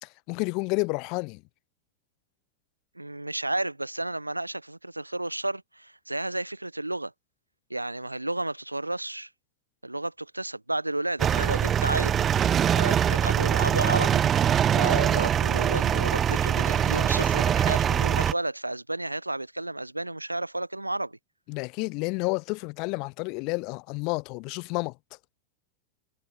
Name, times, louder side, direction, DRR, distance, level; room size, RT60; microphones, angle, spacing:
voice 1, 0.0-1.4 21.5-24.9, left 29 dB, 45° left, 1.8 m, -30 dB
voice 2, 3.0-7.1 7.7-9.3 9.8-12.5 12.7-14.2 14.7-21.2, right 2 dB, 85° right, 4.3 m, -32 dB
sound 1, 11.2-18.3, right 9 dB, 25° right, 2.6 m, -23 dB
figure-of-eight pair, 90°, 0 cm